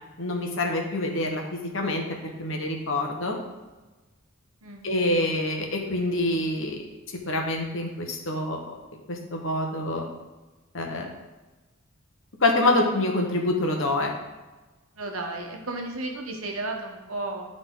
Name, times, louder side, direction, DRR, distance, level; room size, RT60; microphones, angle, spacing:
voice 1, 0.2-2.0 2.4-3.4 4.8-6.9 7.3-8.8 9.1-10.1 10.7-11.1 12.4-14.1, left 2 dB, 65° left, 2 dB, 1.2 m, -26 dB
voice 2, 14.9-17.5, right 2 dB, 85° right, 2 dB, 1.2 m, -33 dB
10.5 x 3.9 x 3.8 m, 1.2 s
head